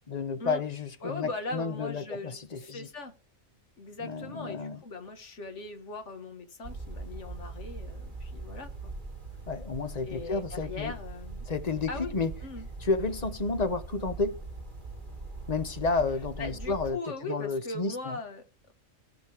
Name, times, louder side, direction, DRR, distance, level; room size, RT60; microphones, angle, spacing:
voice 1, 0.1-2.9 4.0-4.8 9.5-10.9 11.5-12.3 12.8-14.4 15.5-18.2, left 4 dB, 35° left, 0.8 m, -31 dB
voice 2, 1.0-3.1 3.8-8.9 10.1-11.5 11.9-12.7 16.4-18.4, left 2 dB, 60° left, 1.8 m, -40 dB
sound 1, 6.6-16.9, right 3 dB, 35° right, 3.1 m, -41 dB
18.0 x 6.3 x 3.4 m
omnidirectional pair, 1.4 m